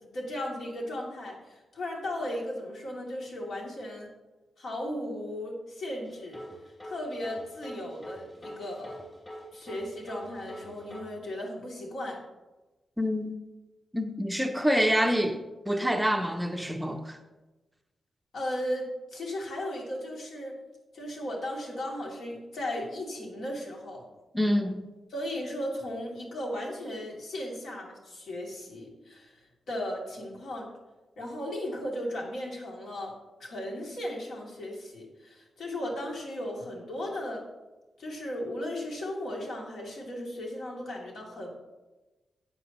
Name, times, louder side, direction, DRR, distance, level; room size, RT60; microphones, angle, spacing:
voice 1, 0.0-4.1 4.6-6.4 6.8-9.0 9.5-12.2 18.3-20.5 20.9-24.1 25.1-30.7 31.2-33.1 33.4-37.5 38.0-41.6, left 1 dB, 70° left, 2.6 m, -36 dB
sound 1, 6.0-11.0, equal, 20° left, 3.1 m, -44 dB
voice 2, 13.0-13.3 13.9-17.2 24.3-24.8, equal, 5° right, 0.6 m, -27 dB
13.0 x 8.7 x 3.0 m
wide cardioid pair, 155°, 0 cm